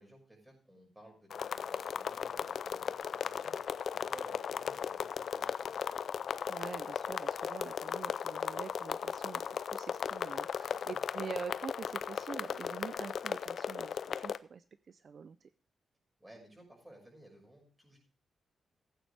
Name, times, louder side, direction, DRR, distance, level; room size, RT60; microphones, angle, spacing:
voice 1, 0.0-3.6 3.9-5.8 10.6-11.0 16.2-18.0, right 1 dB, 10° right, 0 dB, 6.1 m, -56 dB
sound 1, 1.3-14.4, left 7 dB, 65° left, 0.5 m, -37 dB
voice 2, 6.5-9.4 9.7-15.5, right 6 dB, 50° right, 13 dB, 0.4 m, -45 dB
15.0 x 9.0 x 3.3 m, 0.38 s
cardioid pair, 115°, 0 cm